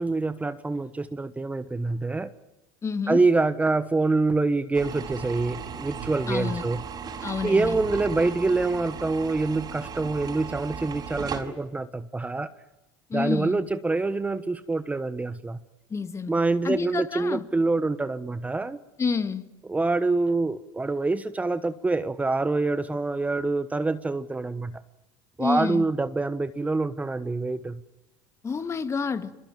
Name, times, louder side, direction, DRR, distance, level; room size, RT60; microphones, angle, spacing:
voice 1, 0.0-2.3 3.1-6.8 7.4-12.5 13.1-15.6 16.3-18.8 19.7-24.7 25.4-27.8, right 3 dB, 15° right, 1.2 m, -26 dB
voice 2, 2.8-3.2 6.3-6.7 7.2-7.8 13.1-13.6 15.9-16.3 16.6-17.5 19.0-19.5 25.4-25.9 28.4-29.3, left 5 dB, 25° left, 2.2 m, -29 dB
sound 1, 4.7-11.4, right 6 dB, 40° right, 5.8 m, -36 dB
27.0 x 22.5 x 9.1 m
hypercardioid pair, 90°, 10 cm